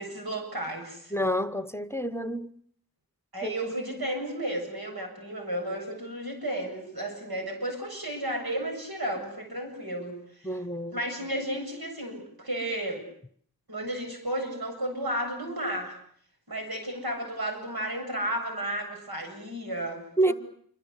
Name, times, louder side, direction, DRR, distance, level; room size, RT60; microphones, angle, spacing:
voice 1, 0.0-1.1 3.3-10.5 10.9-13.0 13.7-15.9 16.5-20.3, right 1 dB, 85° right, 8.0 m, -33 dB
voice 2, 1.1-2.5 3.4-3.5 10.4-11.0 20.2-20.3, right 1 dB, 5° left, 1.1 m, -28 dB
27.0 x 25.0 x 8.3 m
wide cardioid pair, 55°, 36 cm